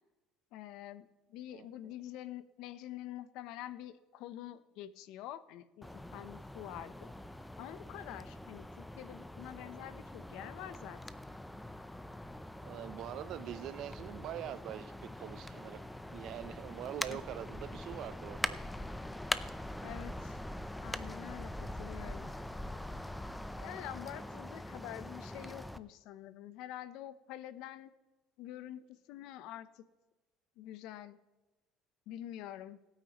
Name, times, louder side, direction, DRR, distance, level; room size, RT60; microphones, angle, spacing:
voice 1, 0.5-7.1 7.6-11.0 17.1-17.2 19.8-20.4 20.8-22.3 23.6-27.9 28.4-29.8 30.6-31.2 32.1-32.8, left 12 dB, 75° left, 15 dB, 0.7 m, -47 dB
voice 2, 1.5-1.9 12.7-15.8 16.1-18.6 25.4-25.5, right 11 dB, 60° right, 16 dB, 0.6 m, -44 dB
sound 1, 5.8-25.8, left 1 dB, 5° left, 0.5 m, -43 dB
21.5 x 9.0 x 3.0 m, 1.1 s
cardioid pair, 120°, 0 cm